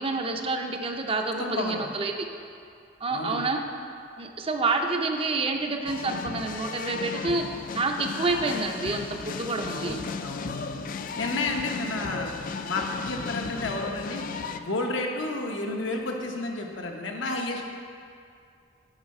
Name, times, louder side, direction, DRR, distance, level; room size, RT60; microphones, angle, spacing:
voice 1, 0.0-2.3 3.0-3.6 4.2-7.5 7.7-10.0, right 3 dB, 30° right, 4 dB, 0.5 m, -28 dB
voice 2, 1.4-1.8 3.1-3.5 9.6-10.9 11.2-12.3 12.6-14.2 14.6-17.6, left 2 dB, 80° left, 1 dB, 0.9 m, -31 dB
sound 1, 5.9-14.6, left 5 dB, 45° left, 0.3 m, -35 dB
8.0 x 4.7 x 5.3 m, 2.4 s
head